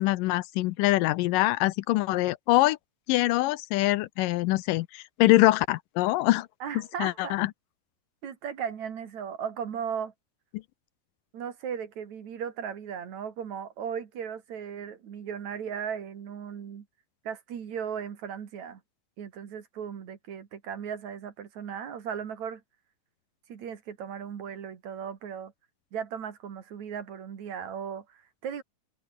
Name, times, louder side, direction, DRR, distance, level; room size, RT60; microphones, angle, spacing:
voice 1, 0.0-2.8 3.1-6.5 7.0-7.5, left 18 dB, 80° left, 2.2 m, -24 dB
voice 2, 6.6-7.4 8.2-10.1 11.3-16.9 17.2-18.8 19.2-22.6 23.5-25.5 25.9-28.6, right 7 dB, 55° right, 3.3 m, -36 dB
omnidirectional pair, 4.0 m